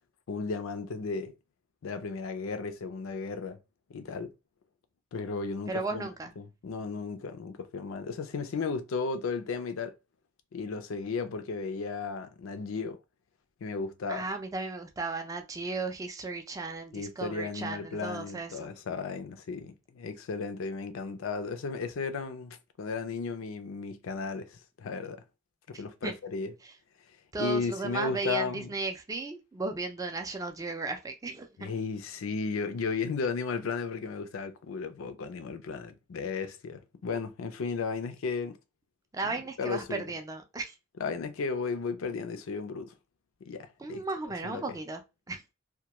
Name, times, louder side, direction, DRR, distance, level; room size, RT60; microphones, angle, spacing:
voice 1, 0.3-1.3 1.8-3.6 3.9-4.3 5.1-6.1 6.4-9.9 10.5-13.0 13.6-14.3 16.9-25.2 25.7-26.5 27.4-28.7 31.6-38.6 39.2-40.0 41.0-42.9 43.4-44.0 44.4-44.6, left 4 dB, 85° left, 0.4 m, -34 dB
voice 2, 5.7-6.3 14.1-18.7 25.7-26.1 27.3-31.7 39.1-40.7 43.8-45.0 45.3-45.4, right 3 dB, 15° right, 0.3 m, -35 dB
2.2 x 2.1 x 2.8 m
head